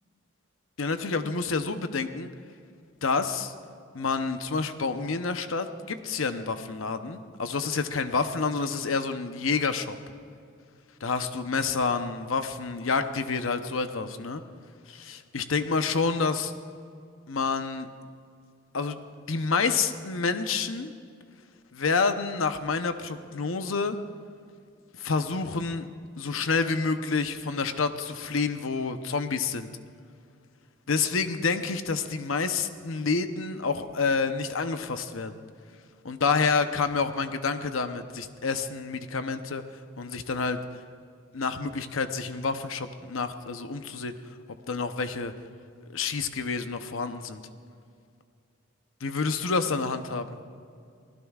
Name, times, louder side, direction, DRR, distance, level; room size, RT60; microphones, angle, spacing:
voice 1, 0.8-2.3 3.0-3.5 3.9-10.0 11.0-14.4 14.9-16.5 17.3-17.9 18.7-19.0 19.2-20.9 21.7-24.0 24.9-25.9 26.2-29.7 30.9-35.3 36.0-39.6 40.0-40.6 41.3-44.1 44.7-45.3 45.9-47.4 49.0-50.4, left 4 dB, 85° left, 9 dB, 0.8 m, -28 dB
23.5 x 16.5 x 2.4 m, 2.3 s
head